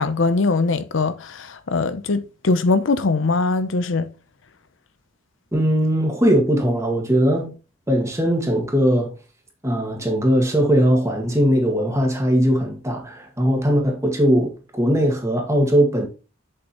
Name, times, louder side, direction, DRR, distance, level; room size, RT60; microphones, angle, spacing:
voice 1, 0.0-4.1, left 3 dB, 65° left, 0.6 m, -21 dB
voice 2, 5.5-7.5 7.9-9.1 9.6-16.1, equal, 15° right, 1.9 m, -19 dB
8.0 x 7.1 x 3.0 m
head